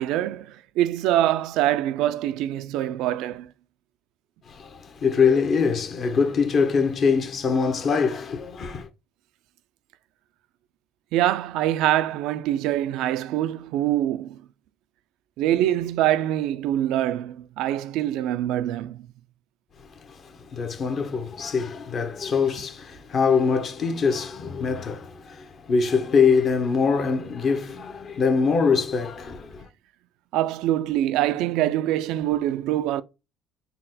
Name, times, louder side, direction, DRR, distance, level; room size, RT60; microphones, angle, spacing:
voice 1, 0.0-3.5 11.1-14.4 15.4-19.1 30.3-33.0, right 13 dB, 80° right, 0.3 m, -24 dB
voice 2, 4.5-8.9 20.0-29.7, left 5 dB, 50° left, 0.9 m, -23 dB
4.1 x 2.1 x 4.0 m
supercardioid pair, 90°, 0 cm